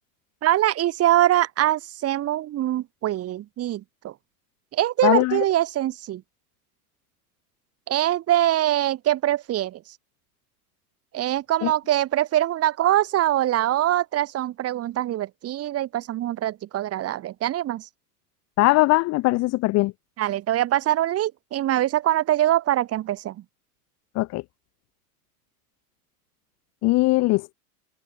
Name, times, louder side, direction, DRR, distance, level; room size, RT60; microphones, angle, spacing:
voice 1, 0.4-4.1 4.7-6.2 7.9-9.8 11.1-17.9 20.2-23.4, right 13 dB, 30° right, 2.0 m, -23 dB
voice 2, 5.0-5.4 11.6-11.7 18.6-19.9 24.1-24.4 26.8-27.5, left 20 dB, 35° left, 0.9 m, -20 dB
hypercardioid pair, 95°, 46 cm